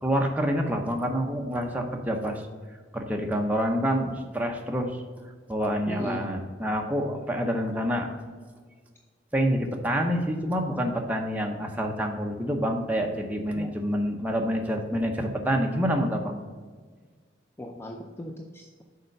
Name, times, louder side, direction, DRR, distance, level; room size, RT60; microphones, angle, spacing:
voice 1, 0.0-2.4 2.9-5.0 5.5-8.1 9.3-16.4, equal, 10° right, 1 dB, 0.8 m, -27 dB
voice 2, 5.9-6.2 13.5-13.7 17.6-18.8, left 1 dB, 10° left, 2 dB, 0.4 m, -37 dB
6.7 x 4.3 x 6.6 m, 1.5 s
head